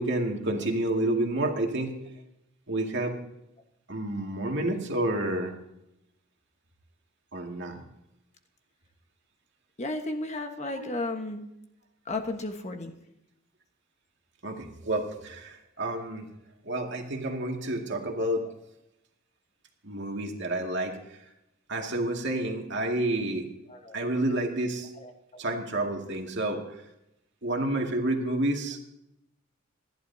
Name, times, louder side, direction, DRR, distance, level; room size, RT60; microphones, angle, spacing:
voice 1, 0.0-1.9 2.7-3.2 3.9-5.5 7.3-7.8 10.8-10.9 14.4-16.3 16.6-18.5 19.8-21.2 21.7-23.5 23.9-24.9 25.4-26.8 27.4-28.8, right 1 dB, 60° right, 2 dB, 2.2 m, -29 dB
voice 2, 9.8-11.4 12.1-12.9 23.7-24.0 25.0-25.4, left 2 dB, 35° left, 4 dB, 1.3 m, -34 dB
28.0 x 11.5 x 2.8 m, 0.85 s
head